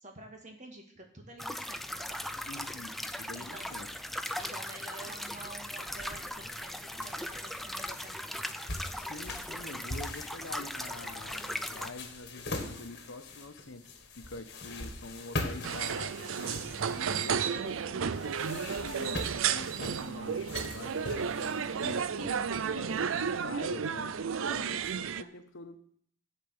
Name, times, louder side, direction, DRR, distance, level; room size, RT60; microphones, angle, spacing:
voice 1, 0.0-2.3 3.4-3.7 4.4-8.3 24.5-25.3, right 2 dB, 40° right, 3 dB, 1.9 m, -49 dB
sound 1, 1.4-11.9, left 1 dB, ahead, 0.4 m, -39 dB
voice 2, 2.5-3.9 8.9-16.1 16.9-24.2 24.4-25.1 25.3-25.8, left 2 dB, 75° left, 8 dB, 1.1 m, -46 dB
sound 2, 5.9-23.3, left 2 dB, 55° left, 1.6 m, -43 dB
sound 3, 15.6-25.2, right 7 dB, 85° right, 0.5 m, -32 dB
13.5 x 5.2 x 8.0 m, 0.62 s
head